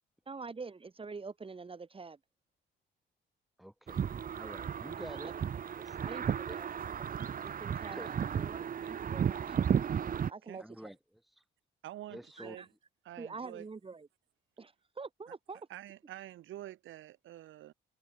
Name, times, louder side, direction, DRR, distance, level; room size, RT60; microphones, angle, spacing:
voice 1, 0.3-2.2 5.0-6.7 7.0-7.2 7.4-9.6 10.2-10.9 12.4-12.7 13.2-14.1 14.6-15.7, right 4 dB, 25° right, 2.5 m, -46 dB
voice 2, 3.6-4.1 4.3-5.3 5.8-6.2 6.5-6.6 7.7-8.1 10.6-11.0 12.1-12.6, equal, ahead, 2.0 m, -48 dB
sound 1, 3.9-10.3, right 8 dB, 45° right, 0.9 m, -34 dB
voice 3, 11.8-12.6 13.0-13.6 15.7-17.7, right 13 dB, 80° right, 1.4 m, -47 dB
cardioid pair, 90°, 20 cm